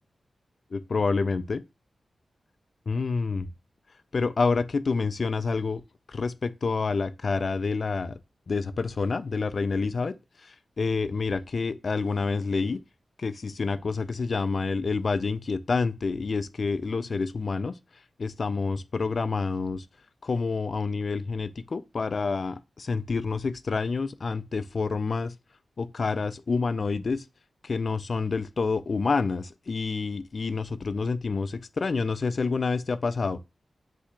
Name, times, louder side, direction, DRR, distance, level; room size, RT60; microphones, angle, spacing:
voice 1, 0.7-1.6 2.9-3.5 4.1-5.8 6.1-8.2 8.5-10.1 10.4-12.8 13.2-17.8 18.2-19.9 20.2-25.3 25.8-27.2 27.6-33.4, left 4 dB, 50° left, 0.3 m, -28 dB
3.4 x 2.8 x 4.4 m
wide cardioid pair, 120°, 0 cm